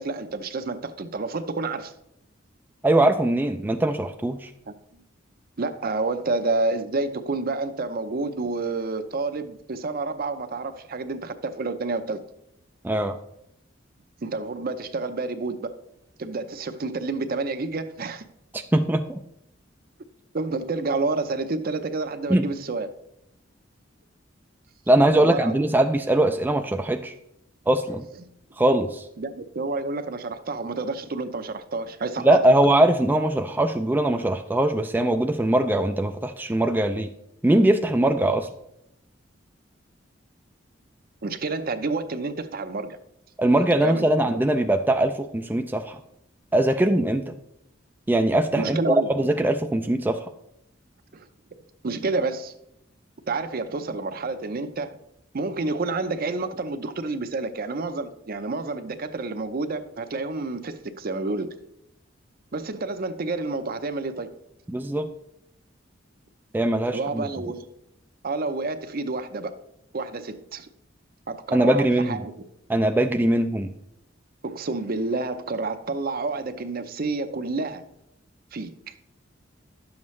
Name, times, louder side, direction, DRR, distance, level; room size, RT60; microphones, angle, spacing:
voice 1, 0.0-1.9 4.7-4.8 5.6-12.3 14.2-15.8 16.2-18.2 20.3-22.9 25.2-25.7 29.2-32.4 41.2-43.0 43.6-44.3 48.6-49.3 51.1-51.3 51.8-52.5 53.3-55.0 55.3-61.5 62.5-64.3 66.9-67.7 68.2-69.5 69.9-70.7 71.3-72.3 74.4-77.8 78.5-78.9, right 3 dB, 50° right, 0.6 m, -29 dB
voice 2, 2.8-4.5 12.8-13.2 18.5-19.2 22.3-22.5 24.9-27.1 27.7-28.1 28.6-29.0 32.2-37.1 37.4-38.5 43.4-46.0 46.5-47.3 48.1-48.8 49.1-50.2 64.7-65.1 66.5-67.3 71.5-72.2 72.7-73.7, right 1 dB, 10° right, 0.3 m, -21 dB
11.0 x 7.2 x 3.2 m
head